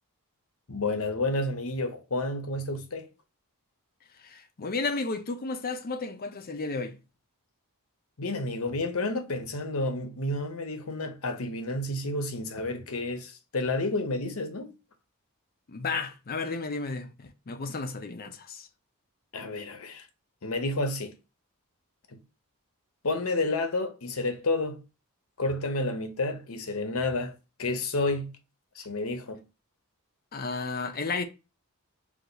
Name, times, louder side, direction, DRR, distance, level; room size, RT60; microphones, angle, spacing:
voice 1, 0.7-3.1 8.2-14.7 19.3-20.1 20.4-21.1 22.1-22.2 23.0-24.8 25.4-28.3 28.7-29.4, left 2 dB, 65° left, 0.9 m, -30 dB
voice 2, 4.2-7.0 15.7-18.7 30.3-31.2, left 4 dB, 40° left, 0.6 m, -33 dB
4.8 x 2.3 x 3.9 m
head